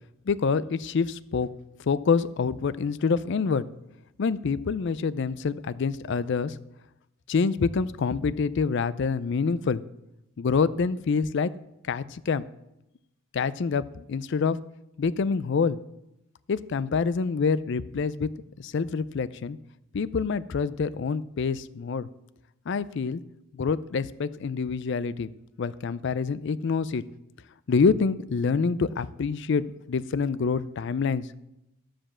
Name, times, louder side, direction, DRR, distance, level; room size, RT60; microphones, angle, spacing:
voice 1, 0.3-1.5 1.9-3.6 4.2-6.6 7.3-9.8 10.4-11.5 11.8-12.4 13.3-14.6 15.0-15.8 16.5-18.3 18.6-19.6 19.9-22.1 22.7-23.2 23.5-25.3 25.6-27.0 27.7-31.4, left 5 dB, 55° left, 17 dB, 0.4 m, -26 dB
12.0 x 5.1 x 7.3 m, 0.89 s
head